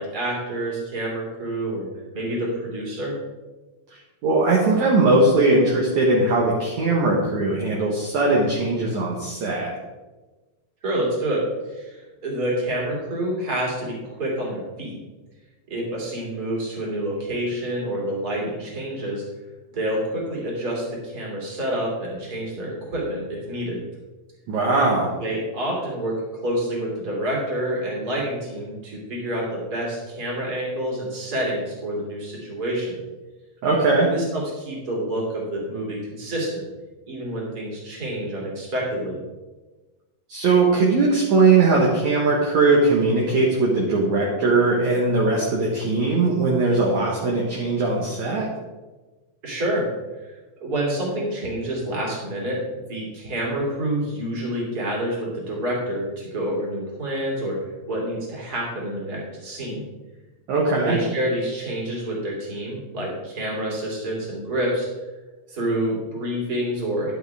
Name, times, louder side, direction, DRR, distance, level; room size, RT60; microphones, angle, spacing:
voice 1, 0.0-1.9 2.1-3.1 10.8-15.0 15.7-19.2 19.7-23.8 25.2-33.0 34.1-36.6 37.1-39.2 49.4-49.8 50.3-52.6 52.9-57.6 57.9-59.8 60.8-64.9 65.5-67.1, right 1 dB, 25° right, -3 dB, 3.0 m, -28 dB
voice 2, 4.2-9.7 24.5-25.1 33.6-34.1 40.3-48.5 60.5-61.0, right 3 dB, 60° right, -3 dB, 2.4 m, -20 dB
11.0 x 9.3 x 3.5 m, 1.2 s
omnidirectional pair, 4.2 m